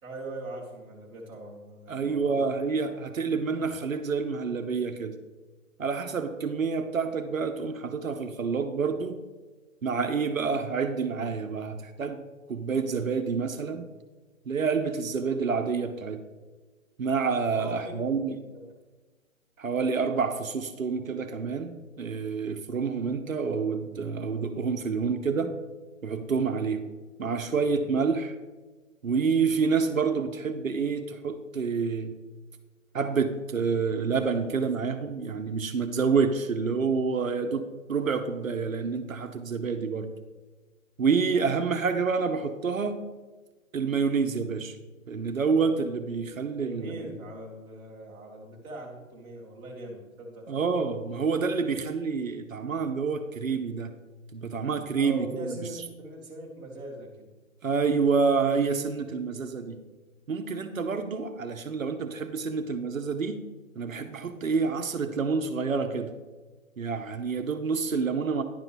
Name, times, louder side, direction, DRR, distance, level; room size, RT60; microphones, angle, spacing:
voice 1, 0.0-2.4 17.5-18.2 18.5-18.7 46.6-50.5 54.9-57.3, right 1 dB, 10° right, -5 dB, 1.2 m, -41 dB
voice 2, 1.9-5.2 5.8-9.1 9.8-13.9 14.5-16.2 17.0-18.4 19.6-25.5 26.0-26.8 27.2-28.3 29.0-32.1 32.9-40.1 41.0-43.0 43.7-44.8 45.1-47.1 50.5-53.9 54.3-55.6 57.6-59.8 60.3-63.4 63.8-66.1 66.8-68.4, right 5 dB, 70° right, 7 dB, 0.8 m, -28 dB
10.5 x 3.9 x 5.9 m, 1.3 s
figure-of-eight pair, 140°, 41 cm